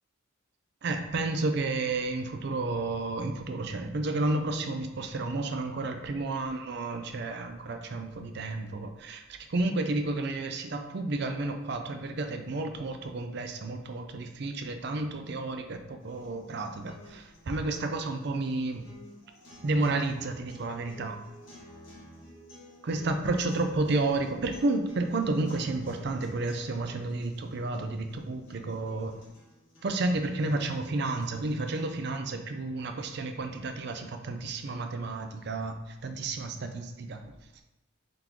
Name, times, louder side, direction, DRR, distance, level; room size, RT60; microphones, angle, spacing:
voice 1, 0.8-18.9 19.6-21.2 22.8-29.2 29.8-37.3, right 2 dB, 55° right, 6 dB, 0.4 m, -31 dB
sound 1, 16.0-32.0, left 1 dB, 70° left, 1.5 m, -52 dB
3.7 x 3.0 x 3.7 m, 0.93 s
head